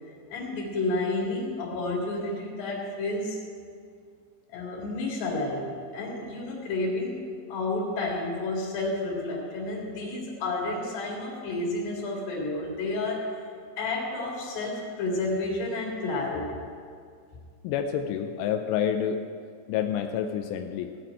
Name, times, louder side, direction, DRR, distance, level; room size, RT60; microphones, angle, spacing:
voice 1, 0.3-3.4 4.5-7.2 7.5-13.3 13.8-16.6, left 2 dB, 65° left, -3 dB, 4.0 m, -30 dB
voice 2, 17.6-19.2 19.7-21.0, left 8 dB, 90° left, 5 dB, 3.2 m, -28 dB
17.0 x 5.8 x 8.9 m, 2.2 s
omnidirectional pair, 5.6 m